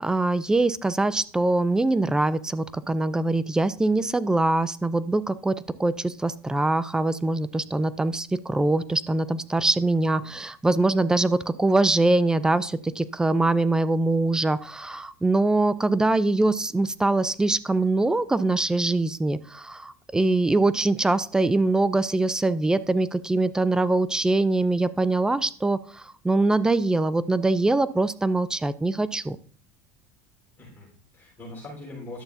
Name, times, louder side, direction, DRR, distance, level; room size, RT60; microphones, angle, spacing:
voice 1, 0.0-29.4, right 2 dB, 5° right, 15 dB, 0.4 m, -23 dB
voice 2, 9.9-10.4 30.6-32.2, left 2 dB, 20° left, -5 dB, 4.0 m, -42 dB
11.0 x 7.0 x 2.6 m, 0.42 s
supercardioid pair, 140°, 10 cm